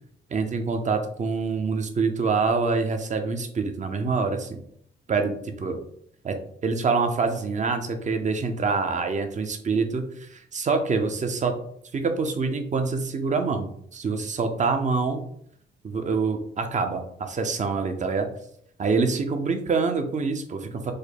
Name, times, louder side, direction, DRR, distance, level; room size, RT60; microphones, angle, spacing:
voice 1, 0.3-4.6 5.1-5.8 6.2-6.3 6.6-11.5 11.9-15.2 15.8-18.3 18.8-20.9, right 4 dB, 40° right, 6 dB, 0.8 m, -26 dB
5.1 x 2.2 x 4.2 m, 0.67 s
cardioid pair, 90°, 20 cm